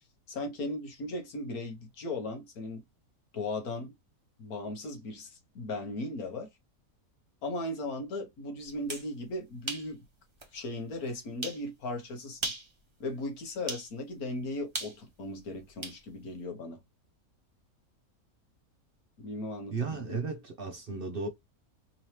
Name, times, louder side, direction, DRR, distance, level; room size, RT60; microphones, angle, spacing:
voice 1, 0.3-2.8 3.3-3.9 4.4-6.5 7.4-10.0 10.5-12.5 13.0-16.8 19.2-20.3, left 2 dB, 75° left, 1.6 m, -37 dB
sound 1, 8.7-9.1 9.7-9.9 10.4-10.5 11.4-11.6 12.3-12.7 13.7-13.9 14.7-16.0, right 2 dB, 20° right, 0.9 m, -37 dB
voice 2, 19.7-21.3, right 4 dB, 50° right, 0.8 m, -34 dB
3.8 x 2.9 x 3.1 m
omnidirectional pair, 1.5 m